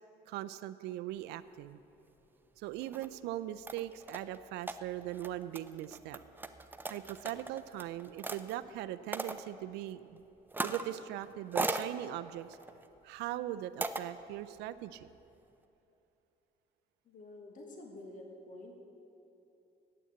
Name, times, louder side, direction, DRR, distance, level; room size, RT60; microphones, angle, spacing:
voice 1, 0.3-1.8 2.6-6.2 6.9-10.2 10.6-12.6 13.0-15.1, right 13 dB, 85° right, 13 dB, 0.4 m, -40 dB
sound 1, 2.7-3.1 3.7-8.6 9.1-9.4 10.5-10.9 11.2-11.9 12.5-12.9 13.8-14.0, right 3 dB, 10° right, 0.5 m, -38 dB
voice 2, 17.0-18.8, left 2 dB, 50° left, 1 dB, 1.5 m, -49 dB
9.3 x 8.6 x 7.8 m, 2.9 s
cardioid pair, 110°, 17 cm